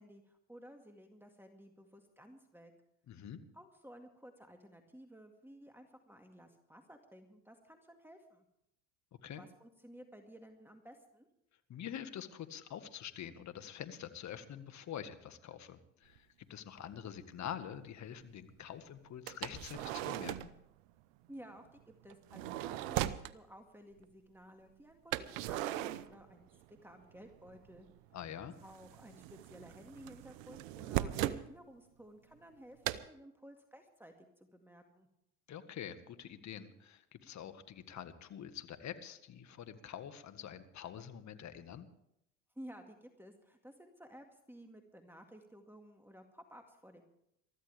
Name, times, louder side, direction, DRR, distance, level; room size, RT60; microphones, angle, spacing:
voice 1, 0.0-2.7 3.5-8.5 9.4-11.3 21.3-27.9 28.6-35.1 42.6-47.0, equal, 5° right, 4 dB, 2.0 m, -55 dB
voice 2, 3.1-3.4 9.2-9.4 11.7-20.3 28.1-28.6 35.5-41.9, left 9 dB, 45° left, 10 dB, 1.8 m, -46 dB
sound 1, 16.2-16.3 16.9-17.0 19.3-20.6 22.1-23.3 25.1-26.8 27.0-27.9 28.2-31.5 32.8-33.0, right 14 dB, 75° right, 0.9 m, -38 dB
23.0 x 14.0 x 3.5 m, 0.79 s
hypercardioid pair, 75°, 39 cm